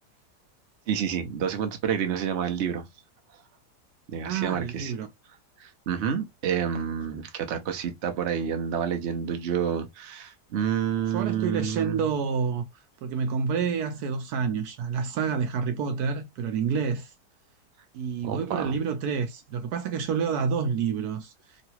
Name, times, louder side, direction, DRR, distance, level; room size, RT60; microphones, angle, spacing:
voice 1, 0.9-2.8 4.1-4.9 5.6-12.0 18.2-18.7, right 8 dB, 55° right, 0.9 m, -29 dB
voice 2, 4.2-5.1 11.1-12.7 13.0-17.1 17.9-21.6, right 6 dB, 75° right, 1.1 m, -28 dB
3.0 x 2.7 x 2.8 m
omnidirectional pair, 1.8 m